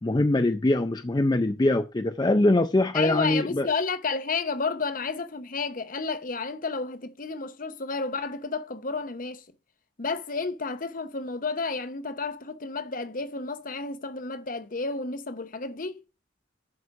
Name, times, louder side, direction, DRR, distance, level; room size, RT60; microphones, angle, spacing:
voice 1, 0.0-3.7, left 2 dB, 20° left, 0.4 m, -23 dB
voice 2, 2.9-9.4 10.0-16.0, left 4 dB, 40° left, 0.8 m, -31 dB
11.0 x 5.0 x 4.8 m
head